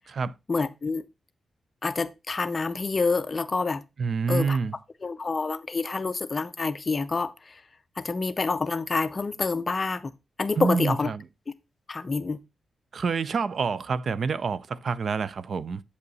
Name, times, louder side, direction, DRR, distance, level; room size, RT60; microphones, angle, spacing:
voice 1, 0.5-1.0 1.8-3.8 4.3-4.6 5.0-7.6 8.0-10.1 10.4-11.1 11.9-12.4, left 4 dB, 30° left, 0.6 m, -27 dB
voice 2, 4.0-4.7 10.6-11.2 12.9-15.8, right 5 dB, 50° right, 0.4 m, -27 dB
8.1 x 5.4 x 4.0 m
wide cardioid pair, 120°, 0 cm